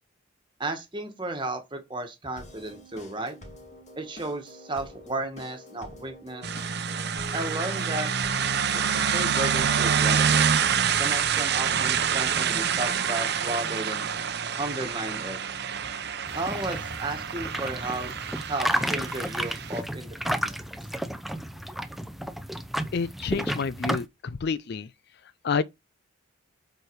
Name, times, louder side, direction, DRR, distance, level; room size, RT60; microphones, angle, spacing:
voice 1, 0.6-3.4 4.0-6.5 7.3-8.1 8.6-10.5 11.0-14.1 14.6-15.4 16.3-18.1 18.5-20.7, right 2 dB, 20° right, 1.6 m, -34 dB
sound 1, 2.4-12.0, left 1 dB, 35° left, 2.1 m, -47 dB
sound 2, 6.4-19.8, right 7 dB, 50° right, 0.8 m, -27 dB
sound 3, 16.3-24.0, equal, ahead, 0.6 m, -32 dB
voice 2, 22.9-24.9 25.2-25.6, left 5 dB, 50° left, 0.4 m, -29 dB
8.0 x 4.6 x 4.7 m
head